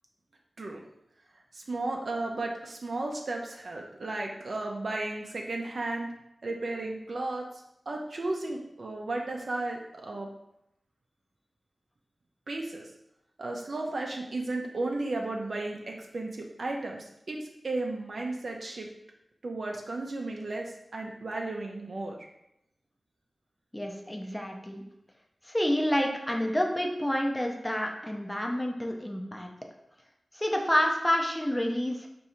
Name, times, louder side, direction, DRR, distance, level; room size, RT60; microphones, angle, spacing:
voice 1, 1.5-6.1 6.4-10.3 12.5-12.9 13.4-18.9 19.4-22.3, right 2 dB, 65° right, 0 dB, 0.5 m, -34 dB
voice 2, 23.7-24.8 25.4-29.5 30.3-32.1, left 1 dB, 10° left, 1 dB, 0.5 m, -28 dB
4.6 x 2.6 x 4.2 m, 0.82 s
wide cardioid pair, 95°, 0 cm